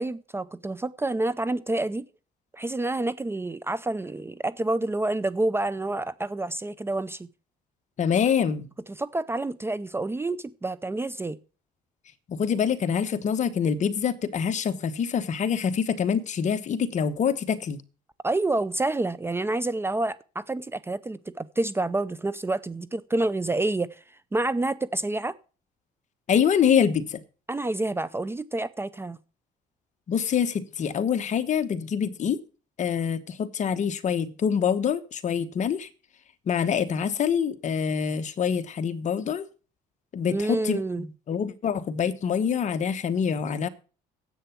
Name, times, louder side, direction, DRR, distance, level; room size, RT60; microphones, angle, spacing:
voice 1, 0.0-2.1 2.5-7.3 8.9-11.4 18.2-24.0 24.3-25.4 27.5-29.2 40.3-41.1, right 2 dB, 15° right, 0.5 m, -28 dB
voice 2, 8.0-8.7 12.3-17.8 26.3-27.2 30.1-32.4 32.8-35.9 36.5-39.4 40.1-43.7, left 7 dB, 45° left, 1.1 m, -25 dB
10.0 x 8.1 x 5.8 m
cardioid pair, 110°, 17 cm